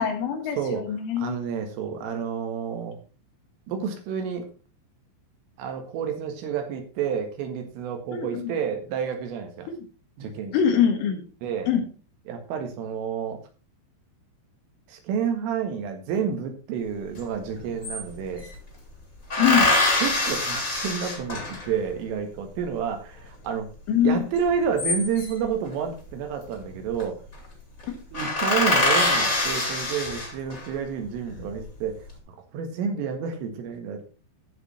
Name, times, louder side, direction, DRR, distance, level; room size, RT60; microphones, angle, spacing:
voice 1, 0.0-1.4 8.1-8.5 10.5-11.2 11.7-11.8 19.4-19.7 23.9-24.2, left 8 dB, 80° left, 5 dB, 4.2 m, -23 dB
voice 2, 1.2-3.0 3.7-4.5 5.6-9.7 10.2-10.6 11.4-11.7 12.3-13.4 14.9-18.5 20.0-23.7 24.0-27.2 28.1-32.0 32.5-34.1, right 7 dB, 80° right, 5 dB, 4.3 m, -29 dB
sound 1, 17.2-17.3 17.5-18.6 19.3-21.8 24.5-25.5 26.6-27.0 27.3-27.5 27.8-27.9 28.1-30.7 31.3-31.9, left 2 dB, 20° left, 2.8 m, -24 dB
15.0 x 5.3 x 4.3 m, 0.36 s
omnidirectional pair, 5.7 m